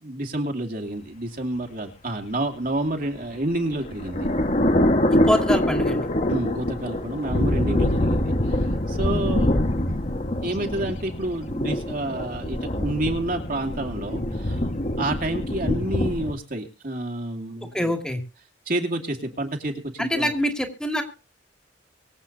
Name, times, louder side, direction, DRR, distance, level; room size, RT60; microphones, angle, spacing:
voice 1, 0.0-4.3 6.3-9.9 10.4-14.7 15.0-18.0 18.7-20.3, right 1 dB, 50° right, 3 dB, 2.6 m, -29 dB
sound 1, 3.2-16.3, left 1 dB, 40° left, 1.7 m, -24 dB
voice 2, 5.1-6.1 17.7-18.2 20.0-21.0, equal, 5° left, 3 dB, 2.4 m, -25 dB
24.5 x 8.4 x 2.8 m, 0.33 s
head